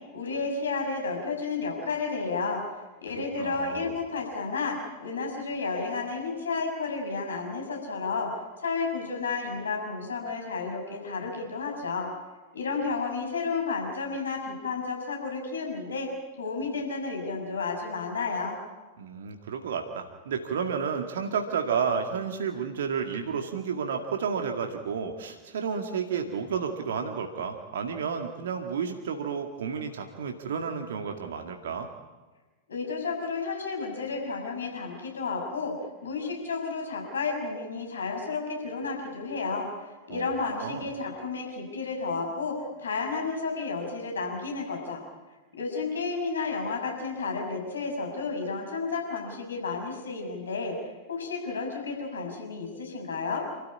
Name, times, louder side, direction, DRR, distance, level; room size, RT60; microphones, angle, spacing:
voice 1, 0.1-2.6 3.0-8.3 8.6-12.1 12.5-16.1 16.4-18.6 32.7-35.7 36.0-39.7 40.1-45.0 45.6-50.7 51.1-53.4, left 4 dB, 70° left, 1 dB, 6.4 m, -32 dB
voice 2, 3.4-3.9 19.0-31.9 40.1-40.3 40.6-40.9, right 6 dB, 60° right, 4 dB, 2.1 m, -31 dB
28.5 x 14.0 x 9.9 m, 1.2 s
figure-of-eight pair, 90°, 0 cm